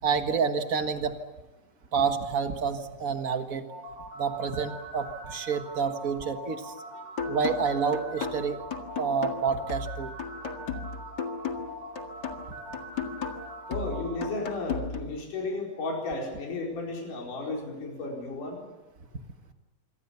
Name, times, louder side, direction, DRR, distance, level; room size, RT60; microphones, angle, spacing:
voice 1, 0.0-1.2 1.9-3.6 4.2-6.7 7.3-8.6 9.0-10.1, right 6 dB, 55° right, 7 dB, 0.9 m, -28 dB
sound 1, 3.7-14.3, right 1 dB, 70° right, 9.5 m, -42 dB
sound 2, 7.2-15.2, left 5 dB, 35° left, 1.9 m, -35 dB
voice 2, 13.7-18.6, left 2 dB, 65° left, -1 dB, 6.0 m, -34 dB
26.5 x 24.0 x 7.0 m, 1.1 s
omnidirectional pair, 4.0 m